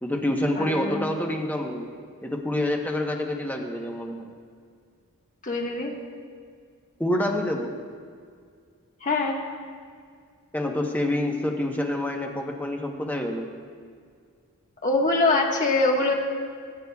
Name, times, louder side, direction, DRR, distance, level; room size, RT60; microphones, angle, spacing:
voice 1, 0.0-1.9 2.2-4.3 7.0-7.7 10.5-13.5, left 1 dB, 10° left, 1 dB, 0.9 m, -27 dB
voice 2, 0.6-1.1 5.4-5.9 9.0-9.3 14.8-16.2, left 3 dB, 35° left, 0 dB, 1.4 m, -23 dB
22.5 x 9.8 x 2.3 m, 2.1 s
head